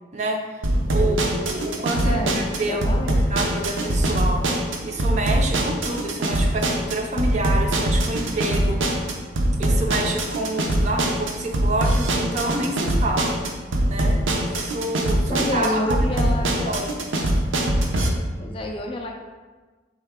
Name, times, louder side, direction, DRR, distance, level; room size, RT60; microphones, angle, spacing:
voice 1, 0.1-2.9 3.3-4.5 4.8-9.1 9.5-13.4 13.9-16.0 16.6-16.9, right 2 dB, 35° right, 2 dB, 0.4 m, -28 dB
sound 1, 0.6-18.1, right 1 dB, 80° right, 0.6 m, -22 dB
voice 2, 2.0-3.2 6.5-6.6 14.1-14.2 15.3-16.8 18.4-19.1, left 1 dB, 25° left, 2 dB, 0.3 m, -28 dB
4.4 x 3.2 x 3.6 m, 1.3 s
head